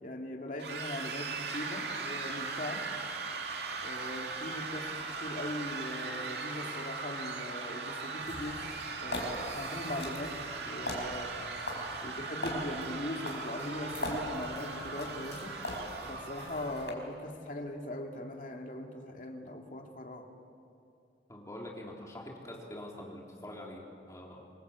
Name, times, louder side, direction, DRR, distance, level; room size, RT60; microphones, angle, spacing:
voice 1, 0.0-2.9 3.8-8.7 9.0-10.4 10.6-11.3 12.0-15.6 16.1-20.3, left 1 dB, 45° left, 2 dB, 2.4 m, -40 dB
sound 1, 0.6-16.9, right 4 dB, 70° right, 2.5 m, -39 dB
sound 2, 8.2-16.9, left 1 dB, 75° left, 4.9 m, -41 dB
voice 2, 21.3-24.4, left 1 dB, 20° left, -2 dB, 3.8 m, -45 dB
26.5 x 21.5 x 8.2 m, 2.7 s
head